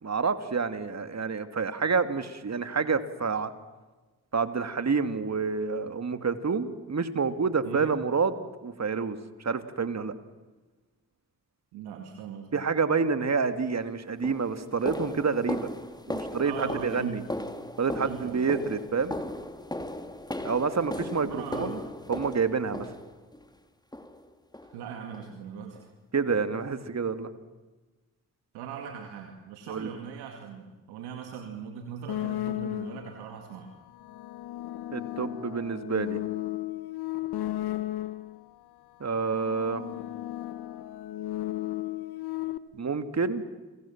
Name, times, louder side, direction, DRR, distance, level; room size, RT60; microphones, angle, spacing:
voice 1, 0.0-3.5 4.3-10.1 12.5-15.7 16.1-17.2 17.8-19.2 20.4-21.8 22.1-22.9 26.1-27.3 29.7-29.9 34.9-36.2 39.0-39.8 42.7-43.4, right 5 dB, 45° right, 10 dB, 2.5 m, -28 dB
voice 2, 11.7-12.5 16.4-17.2 18.0-18.5 21.2-21.8 24.6-25.8 28.5-33.7, right 7 dB, 85° right, 3 dB, 2.4 m, -40 dB
Walk - Higheels Hallways, 13.5-13.7 14.2-23.4 23.9-24.3 24.5-24.8 25.1-25.3 25.8-25.9 26.4-26.5, left 1 dB, 10° left, 3.1 m, -37 dB
sound 1, 32.1-33.2 33.9-38.4 39.2-42.6, left 15 dB, 75° left, 1.1 m, -34 dB
29.5 x 24.0 x 7.4 m, 1.2 s
supercardioid pair, 45°, 38 cm